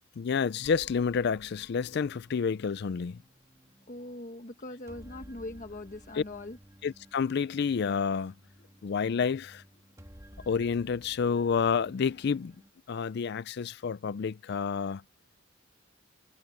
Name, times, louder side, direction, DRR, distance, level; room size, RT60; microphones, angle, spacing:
voice 1, 0.2-3.2 6.1-6.2 6.8-8.3 8.8-9.6 10.5-12.6 12.9-15.0, left 6 dB, 55° left, 0.4 m, -29 dB
sound 1, 0.6-12.7, equal, 15° right, 1.6 m, -55 dB
voice 2, 3.9-6.6, left 1 dB, 40° left, 1.3 m, -41 dB
head